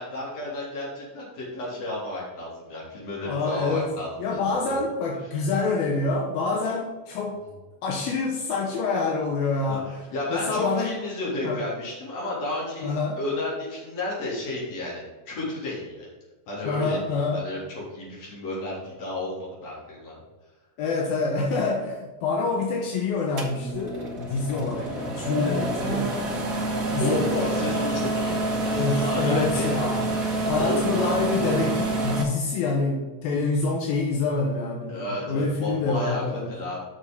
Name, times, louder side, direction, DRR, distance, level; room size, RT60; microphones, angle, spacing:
voice 1, 0.0-4.8 9.7-16.1 16.5-20.2 27.0-29.8 30.6-30.9 34.9-36.8, left 2 dB, 45° left, -5 dB, 4.2 m, -32 dB
voice 2, 3.2-3.9 4.2-7.4 7.8-10.0 10.3-10.9 11.4-11.6 12.8-13.2 16.6-17.4 20.8-26.1 26.9-27.9 28.8-30.1 30.5-36.6, left 3 dB, 80° left, -1 dB, 2.9 m, -26 dB
sound 1, 23.4-32.2, right 2 dB, 80° right, 0.7 m, -27 dB
7.7 x 6.3 x 5.4 m, 1.2 s
omnidirectional pair, 4.2 m